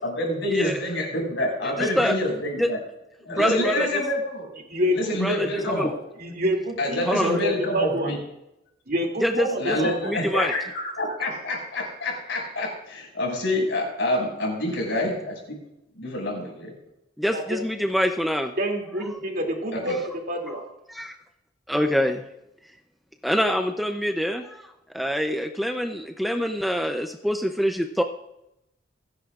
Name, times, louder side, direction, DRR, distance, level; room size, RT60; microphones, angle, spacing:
voice 1, 0.0-2.8 3.2-4.5 4.9-5.9 6.8-8.2 9.6-15.6 15.9-16.7 19.7-20.0, left 1 dB, 70° left, -1 dB, 6.1 m, -27 dB
voice 2, 1.8-2.2 2.6-2.7 3.4-4.0 5.2-5.9 7.1-7.4 9.2-9.8 10.0-10.5 17.2-18.5 20.5-20.6 20.9-21.1 21.7-22.2 23.2-28.0, equal, ahead, 4 dB, 0.6 m, -25 dB
voice 3, 4.7-5.1 6.2-8.1 8.9-10.1 17.2-17.6 18.6-20.0 20.3-20.6, equal, 55° right, 0 dB, 2.7 m, -27 dB
27.5 x 10.5 x 2.5 m, 0.85 s
head